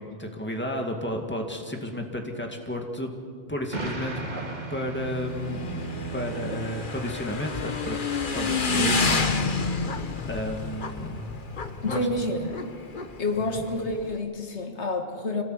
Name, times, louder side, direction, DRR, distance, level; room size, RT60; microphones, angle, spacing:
voice 1, 0.0-3.1 3.5-4.2 4.7-8.0 8.3-9.2 9.6-9.8 10.3-11.3 11.8-12.1 13.4-13.7, left 1 dB, 10° left, 2 dB, 2.2 m, -32 dB
sound 1, 3.5-7.4, right 6 dB, 60° right, 1.6 m, -38 dB
Explosion, 3.7-5.9, right 2 dB, 40° right, 2.1 m, -36 dB
Motorcycle / Engine, 5.0-14.2, left 4 dB, 45° left, 1.3 m, -29 dB
voice 2, 11.8-12.7 13.2-15.4, left 2 dB, 70° left, 5 dB, 1.9 m, -29 dB
26.5 x 18.0 x 8.0 m, 2.1 s
omnidirectional pair, 1.2 m